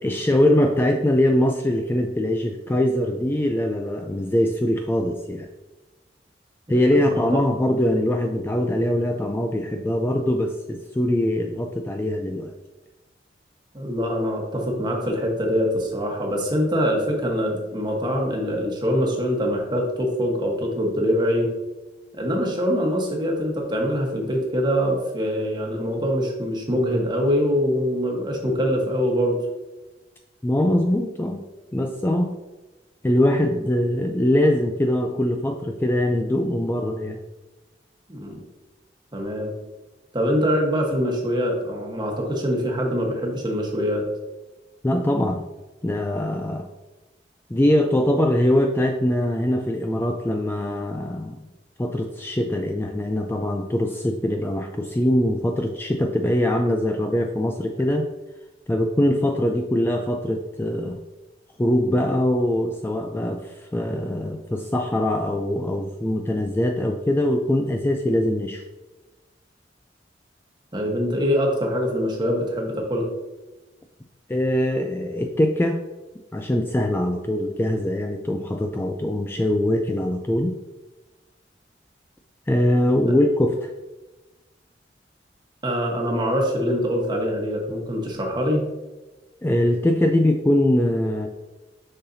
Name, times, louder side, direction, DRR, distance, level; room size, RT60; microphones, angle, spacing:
voice 1, 0.0-5.5 6.7-12.5 30.4-31.4 31.7-32.3 33.0-37.2 44.8-45.4 45.8-46.7 47.5-51.5 51.8-58.1 58.7-61.0 61.6-68.6 74.3-75.8 76.3-80.5 82.5-83.7 89.4-91.3, left 1 dB, 10° left, 3 dB, 0.3 m, -22 dB
voice 2, 13.7-21.5 22.1-29.4 38.1-38.4 39.1-39.5 40.1-44.0 70.7-73.1 85.6-88.6, equal, 25° right, 0 dB, 1.2 m, -24 dB
6.6 x 5.6 x 2.7 m, 1.1 s
head